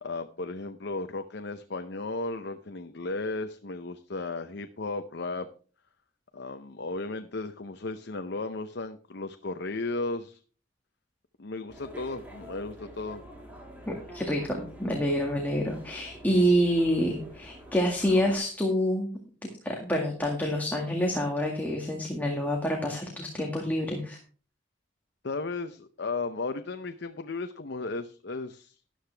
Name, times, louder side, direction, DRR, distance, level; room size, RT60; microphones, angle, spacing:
voice 1, 0.0-5.5 6.3-10.4 11.4-13.2 25.2-28.7, left 3 dB, 60° left, 8 dB, 0.7 m, -35 dB
sound 1, 11.7-18.4, right 1 dB, 10° right, 3.5 m, -46 dB
voice 2, 13.9-19.1 19.6-24.2, equal, 10° left, 0 dB, 2.0 m, -27 dB
12.5 x 11.5 x 3.4 m, 0.39 s
head